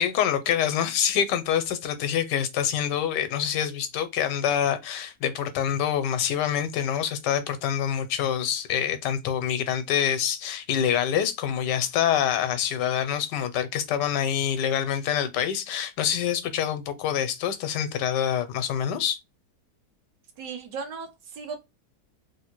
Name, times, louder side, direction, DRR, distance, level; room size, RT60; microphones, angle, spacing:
voice 1, 0.0-19.2, left 9 dB, 80° left, 1.2 m, -26 dB
voice 2, 20.4-21.6, right 5 dB, 90° right, 1.6 m, -36 dB
3.4 x 2.7 x 3.0 m
omnidirectional pair, 1.8 m